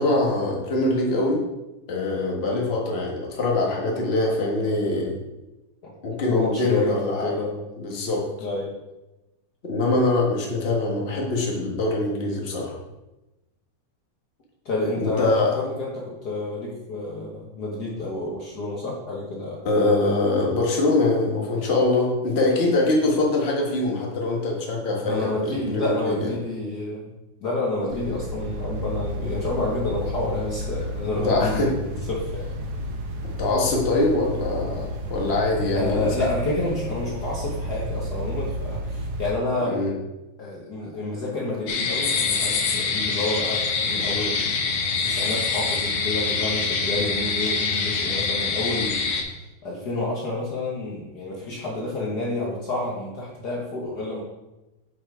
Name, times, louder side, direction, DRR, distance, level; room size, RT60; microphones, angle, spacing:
voice 1, 0.0-1.4 1.9-5.2 6.0-7.3 7.8-8.3 9.6-12.7 15.0-15.5 19.6-26.3 31.2-31.7 33.4-36.1 39.7-39.9, left 2 dB, 45° left, -1 dB, 0.7 m, -23 dB
voice 2, 6.2-7.6 8.4-8.7 14.6-19.6 25.0-27.1 27.4-31.8 32.1-32.5 35.7-39.9 40.4-49.1 49.6-54.2, left 2 dB, 90° left, -4 dB, 0.8 m, -29 dB
sound 1, 27.9-39.3, equal, 75° right, 2.4 m, -31 dB
sound 2, 41.7-49.2, left 4 dB, 65° left, 1.9 m, -25 dB
7.3 x 5.0 x 4.8 m, 1.0 s
omnidirectional pair, 3.5 m